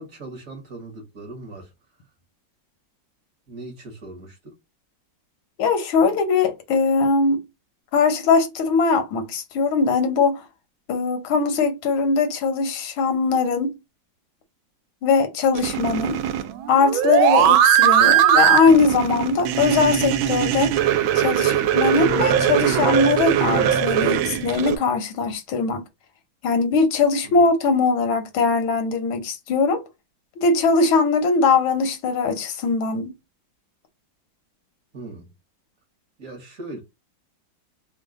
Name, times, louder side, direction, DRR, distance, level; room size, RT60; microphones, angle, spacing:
voice 1, 0.0-1.7 3.5-4.5 27.2-27.4 34.9-35.3 36.2-36.8, right 2 dB, 50° right, 1.3 m, -39 dB
voice 2, 5.6-7.4 7.9-10.5 10.9-13.7 15.0-16.2 16.7-20.7 21.1-25.8 26.4-29.8 30.4-33.1, left 4 dB, 85° left, 1.7 m, -20 dB
sound 1, 15.6-24.8, right 10 dB, 80° right, 1.4 m, -20 dB
3.7 x 2.2 x 3.6 m
omnidirectional pair, 2.2 m